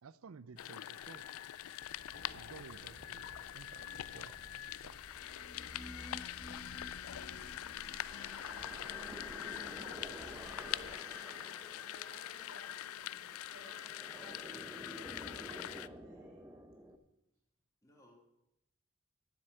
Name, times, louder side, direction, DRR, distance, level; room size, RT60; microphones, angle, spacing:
voice 1, 0.0-1.5 2.3-5.0, right 5 dB, 85° right, 18 dB, 0.5 m, -55 dB
sound 1, 0.6-15.9, left 12 dB, 90° left, 0.4 m, -44 dB
sound 2, 1.8-10.9, equal, 45° right, 3.2 m, -58 dB
sound 3, 5.2-17.0, equal, 10° right, 0.8 m, -51 dB
voice 2, 7.0-8.0 8.2-11.6 11.9-16.4, right 1 dB, 65° right, 1 dB, 4.0 m, -60 dB
voice 3, 8.1-8.6 17.8-18.2, left 1 dB, 15° left, -1 dB, 2.5 m, -63 dB
10.5 x 7.6 x 7.8 m, 0.85 s
head